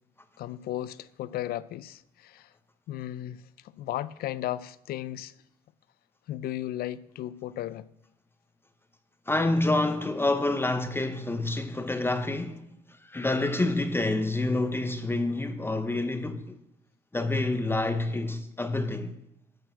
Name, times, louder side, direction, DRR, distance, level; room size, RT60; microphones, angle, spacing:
voice 1, 0.4-2.5 2.9-5.3 6.3-7.8, left 13 dB, 65° left, 0.5 m, -35 dB
voice 2, 9.3-12.7 13.0-16.6 17.1-19.1, left 2 dB, 15° left, 0.7 m, -27 dB
12.5 x 4.5 x 7.6 m
cardioid pair, 110°, 17 cm